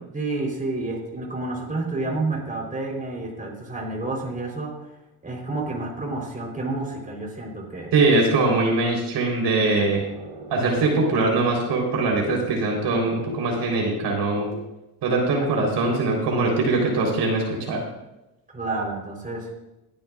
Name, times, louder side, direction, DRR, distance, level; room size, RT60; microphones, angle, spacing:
voice 1, 0.1-4.7 5.2-7.9 18.5-19.5, right 2 dB, 20° right, -1 dB, 3.8 m, -29 dB
voice 2, 7.9-10.0 10.5-14.5 15.0-17.8, right 3 dB, 60° right, 0 dB, 4.0 m, -22 dB
sound 1, 9.7-14.5, right 1 dB, 90° right, 4.8 m, -38 dB
20.5 x 10.5 x 2.5 m, 0.96 s
cardioid pair, 105°, 46 cm